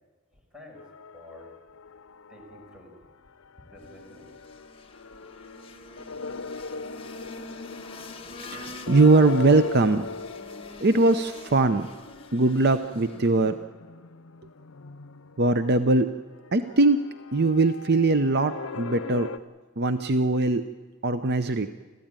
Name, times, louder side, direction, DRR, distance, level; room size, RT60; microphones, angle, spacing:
voice 1, 0.3-0.8 1.1-1.5 2.3-3.0 3.6-4.4, left 1 dB, 5° right, 0 dB, 5.9 m, -49 dB
sound 1, 0.8-3.0 3.3-19.4, left 4 dB, 85° left, 0.7 m, -40 dB
sound 2, 3.8-13.6, left 3 dB, 25° left, 1.4 m, -45 dB
voice 2, 8.5-10.1 10.8-11.9 12.3-13.6 15.4-16.1 16.5-17.0 17.3-19.3 19.8-20.7 21.0-21.7, right 2 dB, 55° right, 10 dB, 0.7 m, -21 dB
28.5 x 13.5 x 9.0 m, 1.4 s
head